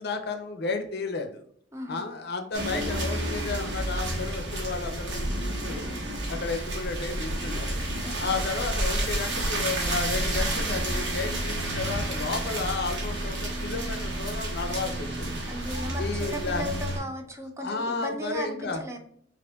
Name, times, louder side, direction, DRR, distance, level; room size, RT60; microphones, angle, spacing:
voice 1, 0.0-1.4 1.9-5.8 6.3-7.8 8.2-15.7 16.0-16.6 17.6-18.8, left 4 dB, 60° left, 6 dB, 0.6 m, -33 dB
voice 2, 1.7-2.0 8.0-8.4 15.5-19.0, equal, 15° right, 4 dB, 0.5 m, -36 dB
sound 1, 2.5-17.0, right 1 dB, 75° right, 1.2 m, -30 dB
sound 2, 9.5-15.4, right 3 dB, 45° right, 0.8 m, -40 dB
5.2 x 2.6 x 2.3 m, 0.65 s
head